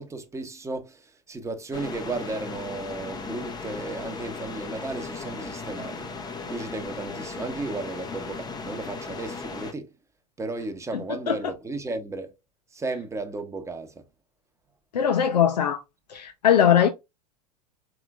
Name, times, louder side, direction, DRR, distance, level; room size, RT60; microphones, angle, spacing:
voice 1, 0.0-6.1 6.5-9.9 10.4-12.3 12.7-14.0, right 3 dB, 15° right, 1.0 m, -34 dB
sound 1, 1.7-9.7, left 4 dB, 20° left, 0.8 m, -36 dB
voice 2, 14.9-15.8 16.1-16.9, left 9 dB, 75° left, 0.6 m, -20 dB
4.9 x 3.6 x 2.3 m
figure-of-eight pair, 85°, 21 cm